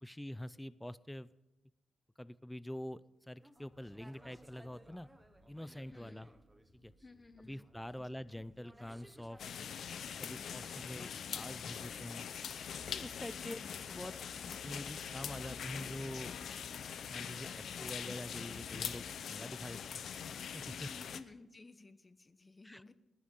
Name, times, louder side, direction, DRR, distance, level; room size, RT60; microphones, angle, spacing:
voice 1, 0.0-1.3 2.2-3.0 3.3-5.1 5.5-6.3 6.7-6.9 7.4-9.4 10.2-12.3 12.9-13.6 13.9-14.1 14.5-16.3 17.1-20.0 20.5-20.9 22.6-22.9, left 1 dB, 5° left, 17 dB, 0.5 m, -46 dB
sound 1, 3.4-9.9 11.3-13.5, right 1 dB, 10° right, 1.2 m, -63 dB
sound 2, 3.6-19.9, right 1 dB, 55° right, 4.6 m, -68 dB
voice 2, 5.9-6.2 7.0-7.7 8.0-8.1 10.5-10.7 13.4-13.7 20.9-22.9, left 3 dB, 25° left, 11 dB, 1.0 m, -56 dB
sound 3, 9.4-21.2, left 8 dB, 80° left, 0.7 m, -43 dB
29.5 x 10.5 x 3.8 m, 0.99 s
cardioid pair, 100°, 0 cm